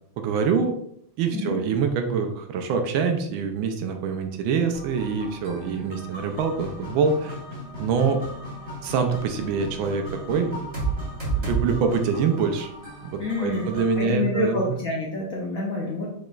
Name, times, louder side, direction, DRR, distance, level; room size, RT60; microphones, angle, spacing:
voice 1, 0.2-0.7 1.2-7.4 7.8-8.2 8.8-10.7 11.4-12.7 13.0-14.7, right 5 dB, 75° right, 6 dB, 1.3 m, -25 dB
sound 1, 4.7-14.0, right 3 dB, 15° right, 1.8 m, -34 dB
voice 2, 13.2-16.1, left 2 dB, 65° left, -3 dB, 0.9 m, -28 dB
4.9 x 4.3 x 2.3 m, 0.70 s
omnidirectional pair, 2.3 m